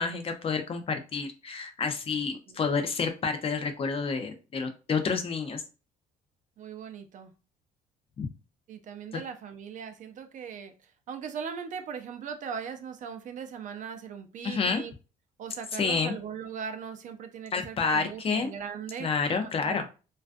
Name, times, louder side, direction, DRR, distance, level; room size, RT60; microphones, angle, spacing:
voice 1, 0.0-5.6 8.2-8.3 14.4-14.8 15.7-16.1 17.5-18.5 19.0-19.9, left 5 dB, 35° left, 7 dB, 0.4 m, -29 dB
voice 2, 6.6-7.3 8.7-14.9 15.4-19.9, right 7 dB, 50° right, 8 dB, 0.4 m, -39 dB
2.4 x 2.2 x 2.4 m, 0.32 s
cardioid pair, 110°, 17 cm